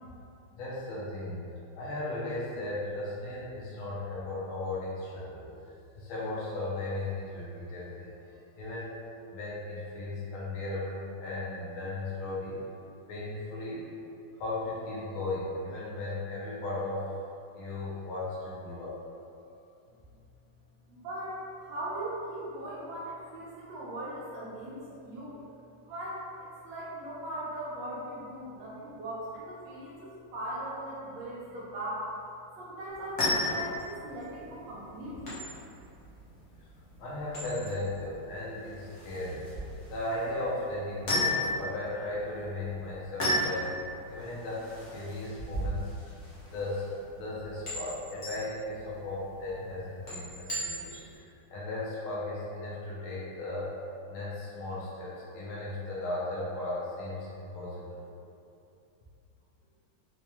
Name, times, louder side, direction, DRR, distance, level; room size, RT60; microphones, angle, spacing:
voice 1, 0.5-1.4 1.7-8.9 9.3-12.6 13.1-13.9 14.4-17.1 17.5-18.9 37.0-39.5 39.9-43.7 44.1-46.1 46.5-46.9 47.2-53.7 54.1-58.0, left 2 dB, 80° left, -7 dB, 1.6 m, -36 dB
voice 2, 20.9-25.4 25.8-32.1 32.5-35.3, right 1 dB, 75° right, -7 dB, 1.3 m, -39 dB
sound 1, 32.9-51.1, left 1 dB, 50° left, 1.0 m, -35 dB
4.6 x 2.2 x 2.8 m, 2.6 s
omnidirectional pair, 2.3 m